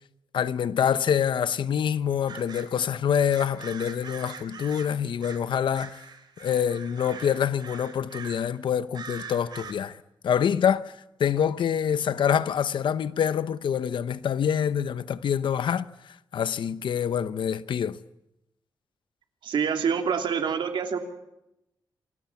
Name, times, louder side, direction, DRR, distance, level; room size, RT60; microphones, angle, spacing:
voice 1, 0.3-6.0 6.4-10.0 10.2-18.0, left 8 dB, 85° left, 0.9 m, -26 dB
sound 1, 2.3-2.7 3.3-5.5 5.7-8.5 8.9-9.7, right 6 dB, 65° right, 3.3 m, -43 dB
voice 2, 19.4-21.0, right 6 dB, 90° right, 2.9 m, -26 dB
28.0 x 20.5 x 8.4 m
wide cardioid pair, 145°, 8 cm